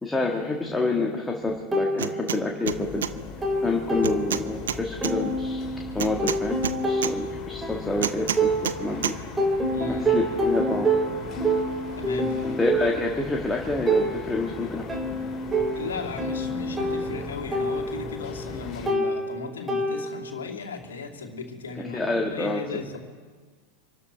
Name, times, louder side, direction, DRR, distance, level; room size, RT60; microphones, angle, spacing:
voice 1, 0.0-3.1 3.6-5.6 5.9-6.6 6.8-9.1 9.9-10.9 12.6-14.8 21.9-22.6, left 2 dB, 10° left, 0 dB, 1.6 m, -27 dB
sound 1, 1.7-2.8 3.1-4.7 5.0-9.0 9.4-20.4, right 1 dB, 10° right, 2.3 m, -28 dB
sound 2, 2.0-2.4 2.7-3.1 4.0-5.1 6.0-7.1 8.0-8.8 9.0-9.2, right 9 dB, 65° right, 0.6 m, -28 dB
sound 3, 2.6-18.9, left 4 dB, 25° left, 3.8 m, -40 dB
voice 2, 9.7-10.1 11.9-12.6 15.7-23.0, left 4 dB, 65° left, 1 dB, 2.5 m, -36 dB
27.0 x 13.0 x 3.4 m, 1.5 s
figure-of-eight pair, 90°, 0 cm